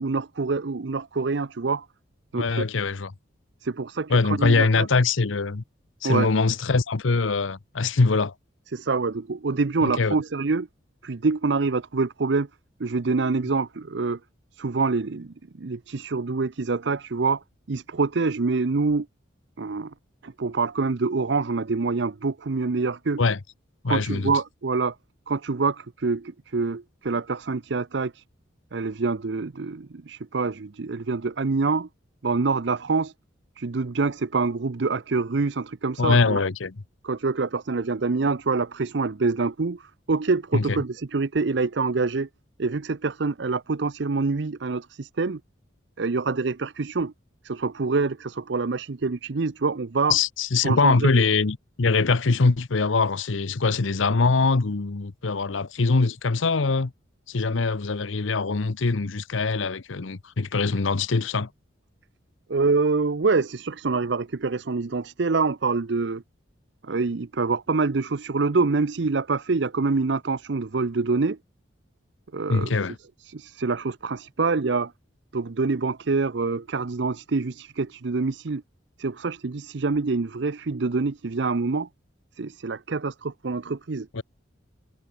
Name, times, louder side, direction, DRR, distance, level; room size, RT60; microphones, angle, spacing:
voice 1, 0.0-1.9 2.3-2.6 3.6-4.9 6.0-6.3 8.7-10.7 11.0-12.5 12.8-14.2 14.5-19.1 19.6-19.9 20.2-23.2 23.9-25.0 25.3-28.2 28.7-31.9 32.2-33.1 33.6-36.4 37.0-42.3 42.6-45.4 46.0-47.1 47.4-50.2 50.6-51.2 62.5-66.2 66.8-71.4 72.3-72.7 73.2-74.9 75.3-78.6 79.0-81.9 82.4-84.1, right 4 dB, 60° right, 0.6 m, -26 dB
voice 2, 2.3-3.1 4.1-5.6 6.0-8.3 9.8-10.1 23.2-23.4 23.8-24.3 36.0-36.7 40.5-40.8 50.1-56.9 57.3-61.5 72.5-72.9 84.1-84.2, left 4 dB, 75° left, 0.8 m, -23 dB
head